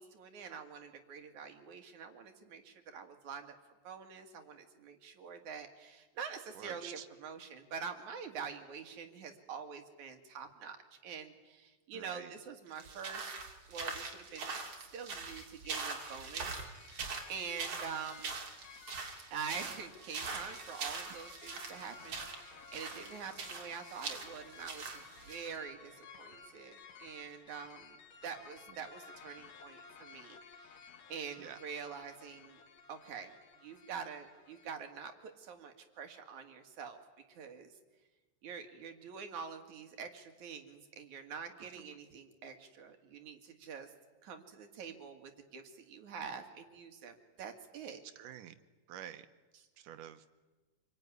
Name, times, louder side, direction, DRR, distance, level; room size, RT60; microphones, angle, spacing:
voice 1, 0.0-3.6 3.8-10.8 11.0-13.3 13.7-14.6 14.9-16.6 17.3-18.4 19.3-30.8 31.1-32.6 32.9-33.3 33.6-37.0 37.3-37.7 38.4-43.9 44.2-48.0 49.5-49.7, right 6 dB, 70° right, 6 dB, 3.4 m, -46 dB
voice 2, 6.6-7.1 11.9-12.3 31.4-31.6 41.6-41.7 48.2-48.6 48.9-49.3 49.8-50.3, right 10 dB, 90° right, 10 dB, 2.7 m, -48 dB
sound 1, 12.7-25.5, right 4 dB, 50° right, 3.8 m, -43 dB
sound 2, 15.3-34.7, left 6 dB, 60° left, 2.5 m, -56 dB
sound 3, 19.8-27.4, equal, 25° right, 8.4 m, -63 dB
27.0 x 22.5 x 9.7 m, 1.2 s
omnidirectional pair, 3.6 m